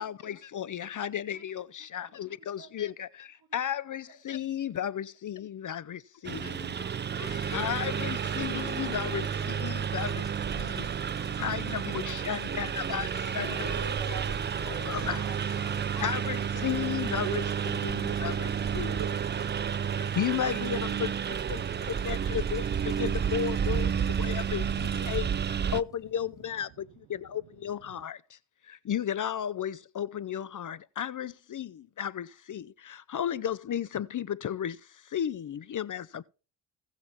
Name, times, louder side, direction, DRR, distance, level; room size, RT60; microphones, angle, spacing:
voice 1, 0.0-6.9 7.2-10.2 10.6-10.9 11.4-14.2 14.7-15.7 16.0-17.4 17.8-19.0 20.0-21.1 21.5-22.6 23.0-28.4 28.6-36.2, left 9 dB, 45° left, 0.7 m, -34 dB
voice 2, 1.9-2.7 3.0-3.1 3.4-3.6 4.1-4.2, right 6 dB, 45° right, 3.3 m, -55 dB
Engine, 6.2-25.8, right 7 dB, 25° right, 0.4 m, -31 dB
sound 1, 7.2-26.5, right 6 dB, 10° left, 5.1 m, -46 dB
sound 2, 11.9-24.9, left 13 dB, 80° left, 1.2 m, -56 dB
voice 3, 13.7-16.7 17.2-21.1 27.9-28.0, right 17 dB, 70° right, 0.7 m, -44 dB
17.5 x 6.7 x 2.9 m
supercardioid pair, 65°, 46 cm